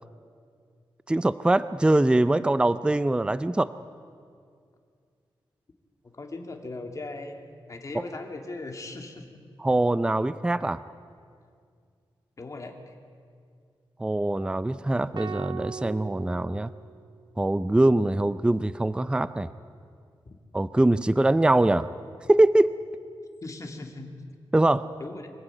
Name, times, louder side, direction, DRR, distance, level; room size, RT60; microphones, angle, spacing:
voice 1, 1.1-3.7 7.9-8.0 9.6-10.8 14.0-16.7 17.4-19.5 20.5-21.9 22.3-22.8 24.5-24.9, right 2 dB, 10° right, 14 dB, 0.4 m, -23 dB
voice 2, 6.1-9.4 12.4-12.9 23.4-24.1 25.0-25.3, left 2 dB, 40° left, 4 dB, 2.3 m, -39 dB
sound 1, 15.2-17.5, right 6 dB, 55° right, 0.6 m, -40 dB
24.5 x 15.0 x 9.1 m, 2.2 s
wide cardioid pair, 120°, 9 cm